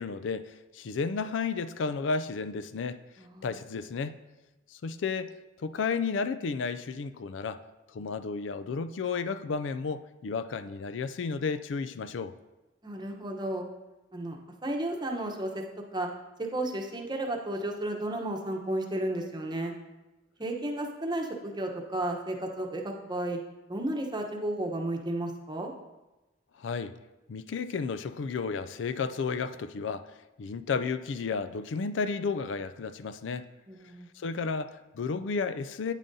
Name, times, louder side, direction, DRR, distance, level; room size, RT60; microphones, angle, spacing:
voice 1, 0.0-3.0 3.4-4.2 4.7-5.3 5.6-7.6 7.9-12.3 26.6-26.9 27.3-30.1 30.4-33.5 34.2-35.9, left 5 dB, 90° left, 12 dB, 0.4 m, -32 dB
voice 2, 3.2-3.5 12.8-13.7 14.1-14.4 14.6-15.6 15.9-16.1 16.4-19.7 20.4-23.4 23.7-25.7 33.7-34.1, right 1 dB, 25° right, 2 dB, 0.9 m, -33 dB
9.1 x 8.9 x 2.7 m, 1.1 s
head